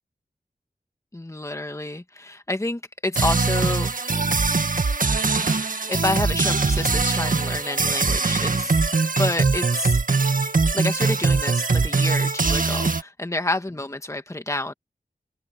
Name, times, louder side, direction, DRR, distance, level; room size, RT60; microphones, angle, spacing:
voice 1, 1.1-4.3 5.4-8.8 9.2-10.0 10.7-14.7, left 2 dB, 20° left, 1.6 m, -29 dB
sound 1, 3.2-13.0, right 4 dB, 60° right, 1.9 m, -22 dB
wide cardioid pair, 80°, 16 cm